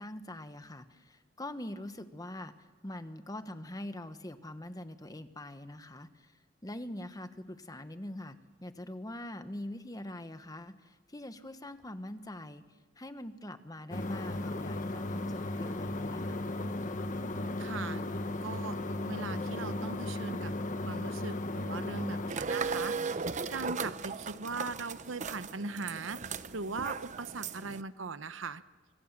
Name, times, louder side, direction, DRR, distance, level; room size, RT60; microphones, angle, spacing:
voice 1, 0.0-6.3 6.6-12.6 13.0-16.4, left 1 dB, 20° left, 10 dB, 1.2 m, -43 dB
sound 1, 13.9-22.3, left 2 dB, 40° left, 1.4 m, -36 dB
voice 2, 17.6-18.0 18.4-18.8 19.1-20.5 20.8-28.6, right 4 dB, 75° right, 13 dB, 0.9 m, -40 dB
sound 2, 22.3-27.8, right 5 dB, 35° right, 0.8 m, -37 dB
25.5 x 25.0 x 7.4 m, 1.4 s
head